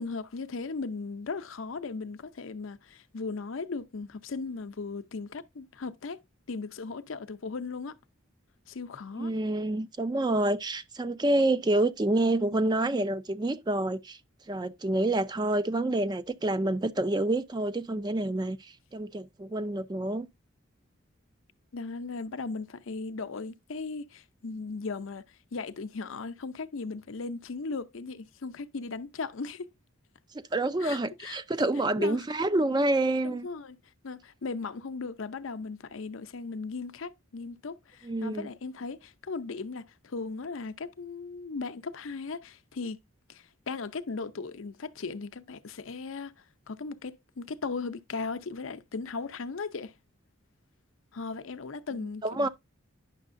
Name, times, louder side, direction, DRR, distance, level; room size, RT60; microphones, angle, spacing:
voice 1, 0.0-6.2 6.5-8.0 8.7-9.3 21.7-29.7 30.8-31.4 32.0-32.2 33.2-33.8 34.0-43.0 43.3-49.9 51.1-52.5, left 4 dB, 75° left, 0.6 m, -37 dB
voice 2, 9.2-14.2 14.5-20.3 30.3-33.5 38.0-38.5 52.2-52.5, right 2 dB, 20° right, 0.4 m, -28 dB
9.8 x 6.4 x 2.5 m
head